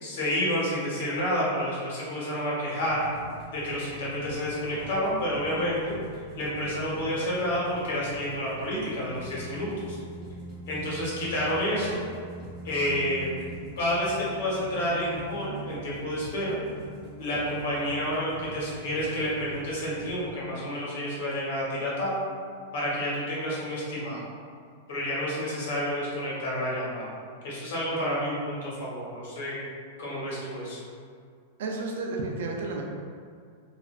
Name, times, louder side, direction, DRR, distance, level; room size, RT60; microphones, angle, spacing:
voice 1, 0.0-3.0 3.5-10.0 10.7-12.0 12.6-13.3 13.8-16.6 17.2-22.1 22.7-24.2 24.9-27.1 27.4-29.6 30.0-30.8, equal, 70° left, -6 dB, 1.1 m, -29 dB
sound 1, 2.8-20.2, right 2 dB, 15° right, 0.8 m, -43 dB
voice 2, 31.6-32.8, right 3 dB, 70° right, 0 dB, 0.4 m, -31 dB
3.1 x 2.4 x 2.4 m, 2.2 s
supercardioid pair, 160°, 0 cm